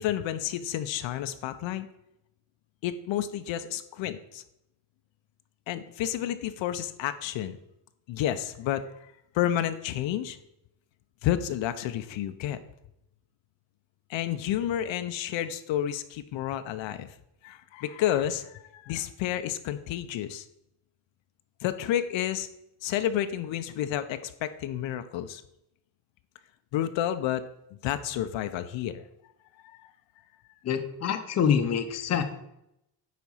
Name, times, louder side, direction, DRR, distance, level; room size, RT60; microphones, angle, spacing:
voice 1, 0.0-1.9 2.8-4.4 5.7-7.6 8.1-9.0 9.3-10.4 11.2-12.6 14.1-17.1 17.4-20.4 21.6-22.5 22.8-25.4 26.7-27.4 27.8-29.0 29.6-29.8, left 11 dB, 70° left, 10 dB, 0.7 m, -30 dB
voice 2, 30.6-32.2, left 7 dB, 35° left, 7 dB, 0.7 m, -26 dB
9.4 x 4.0 x 5.5 m, 0.82 s
cardioid pair, 180°, 47 cm